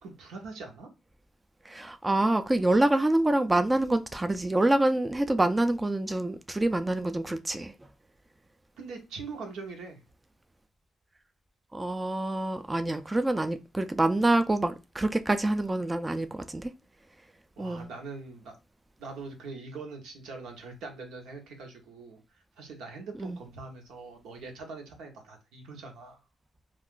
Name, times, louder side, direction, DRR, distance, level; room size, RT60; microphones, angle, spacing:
voice 1, 0.0-0.9 8.8-10.0 17.6-18.6 19.0-22.2 22.6-26.2, right 4 dB, 85° right, 0.9 m, -42 dB
voice 2, 1.7-7.7 11.7-16.7 17.6-17.9 23.2-23.4, right 1 dB, 20° right, 0.3 m, -26 dB
2.4 x 2.4 x 3.7 m
cardioid pair, 75°, 0 cm